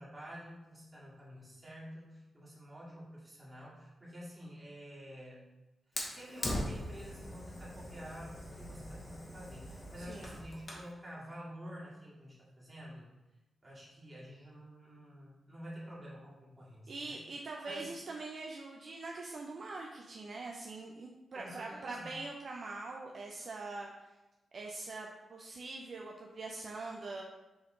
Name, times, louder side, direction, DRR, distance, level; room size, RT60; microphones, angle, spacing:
voice 1, 0.0-5.4 6.1-13.1 13.6-17.2 17.4-18.0 21.3-22.1, equal, 20° right, -7 dB, 2.1 m, -49 dB
Fire, 6.0-10.9, left 1 dB, 30° left, 1.1 m, -41 dB
voice 2, 10.0-10.4 16.9-24.1 24.5-27.2, right 3 dB, 50° right, 0 dB, 0.5 m, -43 dB
7.0 x 3.7 x 3.8 m, 1.0 s
wide cardioid pair, 125°, 0 cm